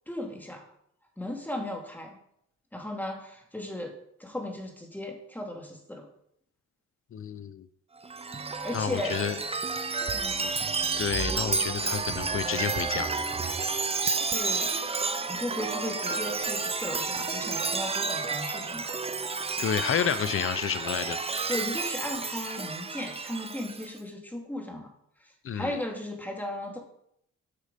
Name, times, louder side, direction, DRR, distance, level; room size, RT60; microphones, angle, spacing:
voice 1, 0.1-0.6 1.2-2.2 2.7-3.9 4.2-6.1 8.6-9.2 10.1-10.5 14.3-14.7 15.2-18.9 21.5-24.9 25.2-26.8, left 1 dB, 5° left, 1 dB, 2.6 m, -36 dB
voice 2, 7.1-7.7 8.7-9.4 11.0-13.1 19.6-21.2 25.4-25.8, left 8 dB, 45° left, 14 dB, 0.8 m, -30 dB
Chime, 8.0-23.9, right 4 dB, 20° right, 0.7 m, -31 dB
9.9 x 6.3 x 5.2 m, 0.71 s
cardioid pair, 90°, 30 cm